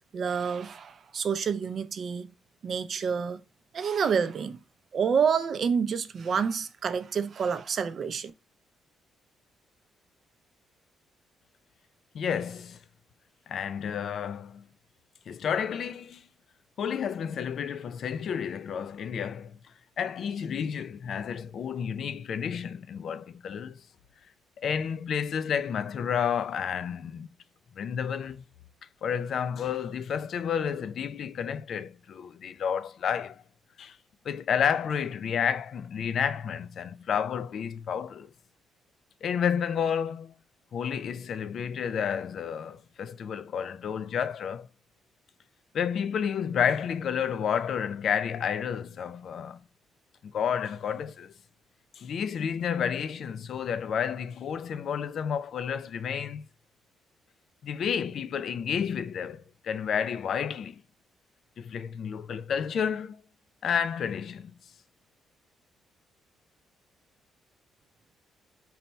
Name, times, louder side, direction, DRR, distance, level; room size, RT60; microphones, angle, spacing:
voice 1, 0.1-2.3 2.6-3.4 3.7-4.6 4.9-8.3, right 6 dB, 55° right, 0.4 m, -28 dB
voice 2, 12.1-12.8 13.5-14.6 15.3-16.3 16.8-19.6 20.0-23.8 24.6-27.3 27.8-28.4 29.0-33.4 33.8-34.0 34.2-38.3 39.2-40.3 40.7-44.7 45.7-49.6 50.2-51.3 52.0-56.5 57.6-60.8 61.6-63.2 63.6-64.5, left 7 dB, 60° left, 0.3 m, -30 dB
4.0 x 2.2 x 4.1 m
cardioid pair, 90°, 0 cm